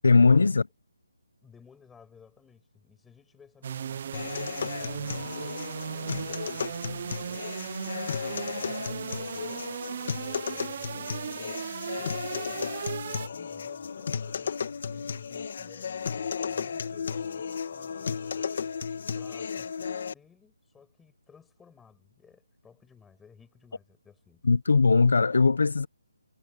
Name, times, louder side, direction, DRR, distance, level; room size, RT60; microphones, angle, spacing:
voice 1, 0.0-0.6 24.4-25.9, left 4 dB, 65° left, 0.6 m, -20 dB
voice 2, 1.4-4.2 4.7-9.8 10.3-11.6 11.9-14.6 14.9-18.8 19.1-24.5, left 6 dB, 5° left, 6.3 m, -57 dB
sound 1, 3.6-13.3, right 8 dB, 30° right, 0.4 m, -37 dB
sound 2, 4.1-20.1, left 6 dB, 40° left, 1.9 m, -34 dB
hypercardioid pair, 175°, 0 cm